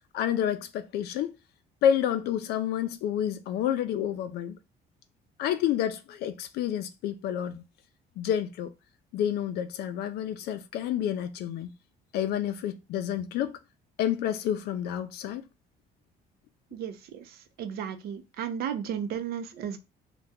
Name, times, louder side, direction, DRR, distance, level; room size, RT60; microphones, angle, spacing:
voice 1, 0.1-1.3 1.8-4.6 5.4-7.6 8.2-8.7 9.1-11.7 12.1-13.6 14.0-15.5, left 10 dB, 70° left, 0.4 m, -29 dB
voice 2, 16.7-19.8, right 8 dB, 70° right, 0.6 m, -34 dB
2.8 x 2.2 x 3.6 m
cardioid pair, 110°, 17 cm